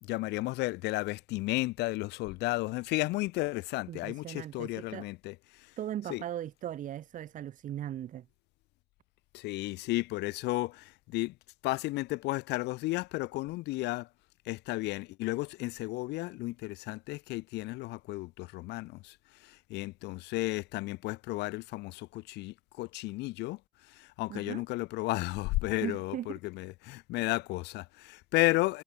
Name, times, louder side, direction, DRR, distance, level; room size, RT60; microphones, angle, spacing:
voice 1, 0.0-5.7 6.1-6.2 9.3-11.3 11.6-14.1 14.5-19.2 19.4-23.6 23.9-28.8, left 20 dB, 90° left, 1.8 m, -33 dB
voice 2, 3.9-5.1 5.8-8.3 24.3-24.6 25.8-26.4, right 11 dB, 50° right, 0.7 m, -38 dB
cardioid pair, 110°, 17 cm